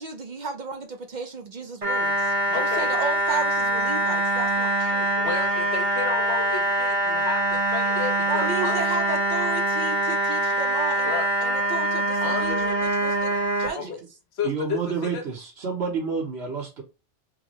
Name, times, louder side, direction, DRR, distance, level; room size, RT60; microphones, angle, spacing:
voice 1, 0.0-5.1 8.3-11.1 11.4-13.3 13.6-14.0, right 4 dB, 55° right, 0.6 m, -33 dB
sound 1, 1.8-13.7, right 1 dB, 30° right, 1.1 m, -24 dB
voice 2, 2.5-2.9 5.2-8.8 11.1-11.3 12.2-12.7 13.7-14.0 14.4-15.2, left 6 dB, 75° left, 1.1 m, -32 dB
voice 3, 14.4-16.8, right 5 dB, 80° right, 1.4 m, -29 dB
5.5 x 2.1 x 2.8 m
omnidirectional pair, 1.1 m